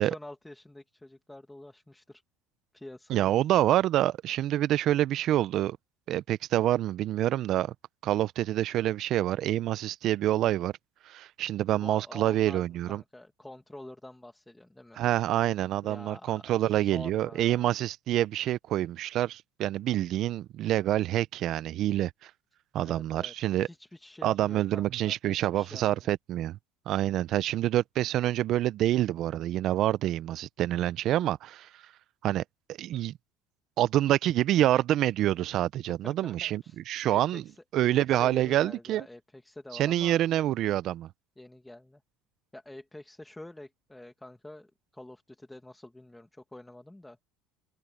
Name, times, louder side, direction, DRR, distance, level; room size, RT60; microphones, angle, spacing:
voice 1, 0.0-2.2 2.7-3.3 11.7-15.0 15.8-17.7 22.8-26.1 36.0-36.8 37.0-40.2 41.4-42.0 42.5-47.2, left 1 dB, 5° left, 1.5 m, -47 dB
voice 2, 3.1-5.8 6.1-7.7 8.0-10.7 11.0-13.0 15.0-22.3 22.7-23.7 24.2-26.6 26.9-31.8 32.2-32.4 32.8-33.1 33.8-37.4 37.7-39.0 39.7-41.1, right 13 dB, 50° right, 0.5 m, -27 dB
cardioid pair, 130°, 0 cm